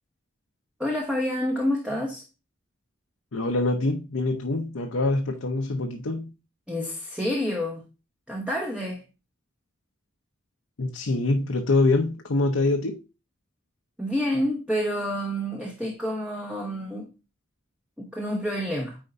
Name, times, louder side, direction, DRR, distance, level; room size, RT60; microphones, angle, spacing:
voice 1, 0.8-2.2 6.7-7.8 8.3-9.0 14.0-17.1 18.0-19.0, equal, 5° right, 1.0 m, -28 dB
voice 2, 3.3-6.3 10.8-13.0, left 2 dB, 85° left, 0.8 m, -25 dB
9.2 x 4.4 x 2.6 m
head